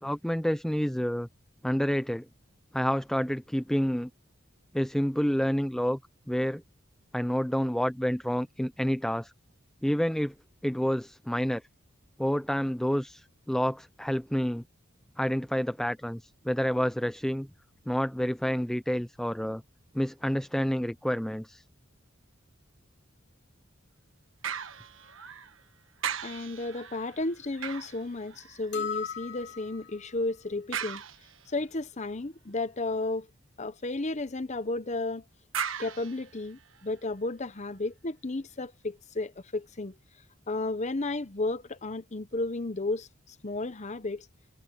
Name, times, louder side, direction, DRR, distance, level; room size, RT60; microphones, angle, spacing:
voice 1, 0.0-1.3 1.6-2.3 2.7-4.1 4.7-6.0 6.3-6.6 7.1-9.3 9.8-10.3 10.6-11.6 12.2-14.6 15.2-17.5 17.9-19.6 19.9-21.6, equal, 5° left, 0.5 m, -28 dB
sound 1, 24.4-25.6 26.0-28.8 30.7-31.7 35.5-37.0 37.6-37.7, right 8 dB, 75° right, 1.3 m, -38 dB
voice 2, 26.2-31.0 31.5-33.3 33.6-35.2 35.8-39.9 40.5-44.3, left 2 dB, 35° left, 0.9 m, -33 dB
sound 2, 28.7-30.1, left 7 dB, 60° left, 3.5 m, -37 dB
head